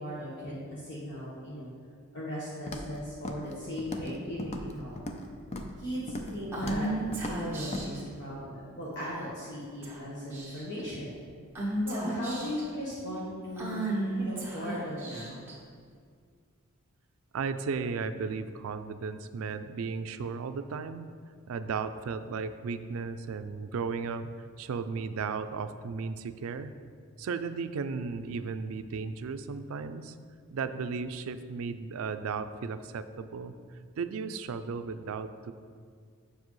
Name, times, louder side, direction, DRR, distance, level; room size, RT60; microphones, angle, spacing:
voice 1, 0.0-1.7 2.1-5.0 5.8-11.2 11.8-15.5, equal, 55° left, -7 dB, 1.1 m, -37 dB
Walk footsteps, 2.7-3.0 3.2-3.5 3.8-4.1 4.4-5.2 5.5-5.8 6.1-6.4 6.6-6.9 7.1-7.4 7.7-7.9, left 1 dB, 30° left, 0.5 m, -37 dB
Female speech woman speaking / Whispering, 6.5-8.0 9.0-9.4 9.8-10.0 10.3-10.8 11.6-12.6 13.6-15.5, right 1 dB, 10° right, 1.1 m, -34 dB
voice 2, 17.3-21.1 21.5-24.3 24.6-26.7 27.2-30.1 30.5-33.6 34.0-35.5, right 5 dB, 75° right, 11 dB, 0.4 m, -35 dB
7.4 x 6.6 x 3.1 m, 2.1 s
head